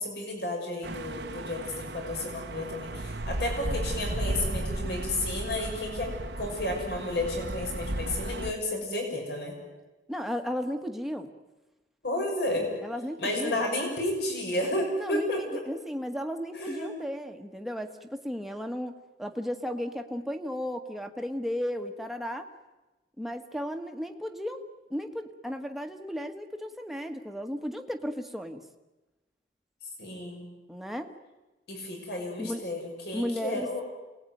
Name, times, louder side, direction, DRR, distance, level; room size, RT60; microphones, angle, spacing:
voice 1, 0.0-6.1 6.4-9.5 12.0-12.7 13.2-15.6 16.5-17.0 30.0-30.5 31.7-33.8, left 1 dB, 65° left, 1 dB, 6.4 m, -32 dB
sound 1, 0.8-8.5, right 1 dB, 75° right, 1.4 m, -34 dB
voice 2, 10.1-11.3 12.8-13.6 15.0-22.5 23.2-24.6 24.9-28.6 30.7-31.2 32.4-32.6 33.1-33.7, equal, ahead, 5 dB, 1.6 m, -34 dB
28.0 x 19.5 x 9.4 m, 1.1 s
head